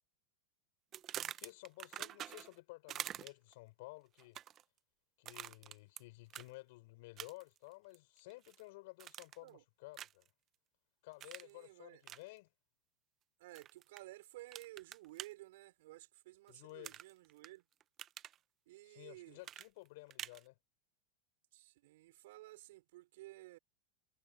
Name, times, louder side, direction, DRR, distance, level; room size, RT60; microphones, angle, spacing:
sound 1, 0.9-2.6 2.9-3.5 4.2-4.6 5.3-6.0 6.3-6.5 7.2-7.6 7.9-8.6 9.0-9.5 9.9-10.3 11.2-11.5 12.0-12.2 13.5-14.0 14.5-15.3 16.8-17.5 17.8-18.4 19.4-20.4, right 11 dB, 35° right, 0.8 m, -46 dB
voice 1, 1.1-4.4 5.2-10.3 11.0-12.5 16.5-17.0 18.8-20.6, left 22 dB, 65° left, 4.7 m, -54 dB
voice 2, 11.4-12.0 13.4-17.6 18.7-19.4 21.5-23.6, right 18 dB, 70° right, 5.1 m, -54 dB
supercardioid pair, 130°, 0 cm